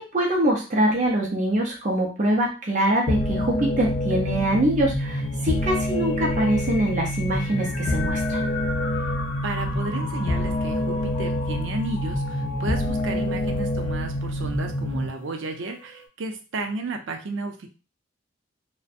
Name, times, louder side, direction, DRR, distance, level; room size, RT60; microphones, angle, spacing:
voice 1, 0.0-8.4, right 1 dB, 40° right, -2 dB, 0.5 m, -24 dB
sound 1, 3.1-15.1, left 1 dB, 40° left, 0.4 m, -26 dB
sound 2, 5.0-16.1, left 3 dB, 90° left, 0.6 m, -39 dB
voice 2, 9.4-17.7, right 2 dB, 85° right, 5 dB, 0.5 m, -33 dB
2.6 x 2.1 x 2.4 m, 0.33 s
head